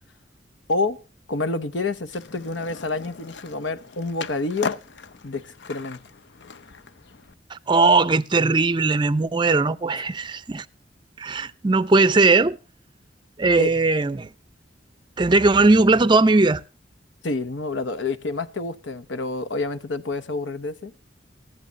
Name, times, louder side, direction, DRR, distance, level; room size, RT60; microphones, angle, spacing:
voice 1, 1.3-4.8 5.2-6.0 13.6-13.7 17.2-20.9, left 3 dB, 85° left, 1.0 m, -28 dB
Skateboard, 2.1-7.3, left 5 dB, 70° left, 0.6 m, -37 dB
voice 2, 7.5-10.7 11.2-12.6 13.4-14.3 15.2-16.6, right 3 dB, 25° right, 0.5 m, -19 dB
14.5 x 11.0 x 2.9 m
head